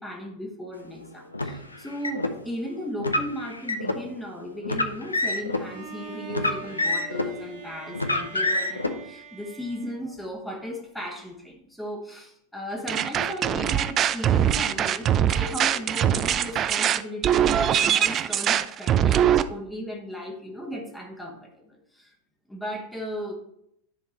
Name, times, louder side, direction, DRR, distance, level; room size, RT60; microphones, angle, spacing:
voice 1, 0.0-22.1 22.5-23.3, equal, 5° left, 0 dB, 1.0 m, -36 dB
Car, 1.3-2.3 3.0-4.0 4.6-5.6 6.3-7.4 7.9-8.9, left 2 dB, 80° left, 0.5 m, -27 dB
Bowed string instrument, 5.5-10.5, right 5 dB, 50° right, 2.1 m, -44 dB
sound 1, 12.9-19.4, right 10 dB, 30° right, 0.3 m, -22 dB
10.0 x 3.6 x 4.1 m, 0.75 s
figure-of-eight pair, 90°, 0 cm